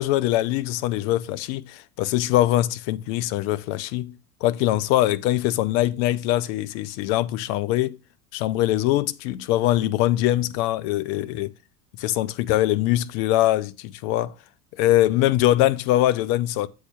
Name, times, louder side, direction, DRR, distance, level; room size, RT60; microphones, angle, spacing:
voice 1, 0.0-8.0 8.3-11.5 12.0-14.3 14.8-16.7, left 15 dB, 50° left, 0.6 m, -22 dB
7.9 x 2.8 x 5.7 m
hypercardioid pair, 80°, 47 cm